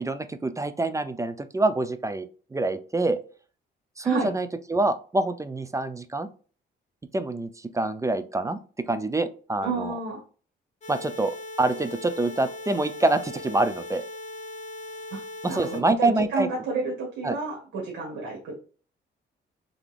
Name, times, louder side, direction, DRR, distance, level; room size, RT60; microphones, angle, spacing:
voice 1, 0.0-3.2 4.0-6.3 7.1-9.9 10.9-14.0 15.4-16.5 17.2-17.4, right 2 dB, 15° right, 11 dB, 0.4 m, -26 dB
voice 2, 9.6-10.2 15.1-15.2 15.5-18.5, right 3 dB, 90° right, -2 dB, 1.6 m, -30 dB
sound 1, 10.8-15.8, left 2 dB, 35° left, 1.6 m, -39 dB
3.7 x 3.5 x 3.3 m, 0.39 s
cardioid pair, 90°, 20 cm